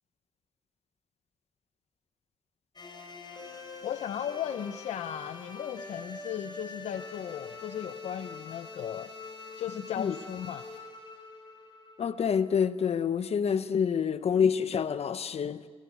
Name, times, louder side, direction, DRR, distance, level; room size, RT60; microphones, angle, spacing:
sound 1, 2.8-12.7, left 3 dB, 40° left, 5.9 m, -44 dB
voice 1, 3.8-9.1 9.6-10.7, left 10 dB, 80° left, 0.7 m, -36 dB
voice 2, 12.0-15.6, left 7 dB, 65° left, 1.1 m, -27 dB
27.5 x 19.0 x 8.3 m
cardioid pair, 60°, 11 cm